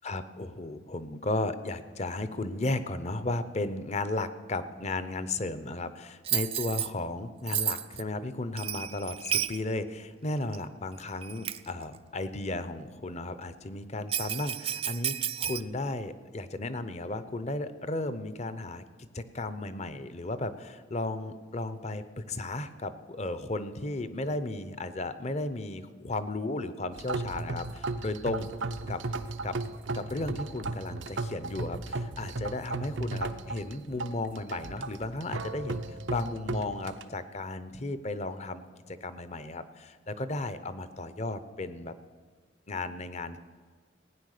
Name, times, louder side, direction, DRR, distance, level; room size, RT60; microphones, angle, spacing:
voice 1, 0.0-18.8 19.1-29.0 29.4-29.6 29.9-41.9 42.7-43.4, left 2 dB, 35° left, 13 dB, 0.7 m, -34 dB
Bell, 6.3-6.9 7.5-8.0 8.6-9.6 10.5-10.6 11.2-11.7 14.1-15.6, right 10 dB, 30° right, 0.4 m, -31 dB
sound 1, 26.9-37.0, right 2 dB, 90° right, 0.7 m, -36 dB
17.0 x 9.4 x 6.6 m, 1.5 s
head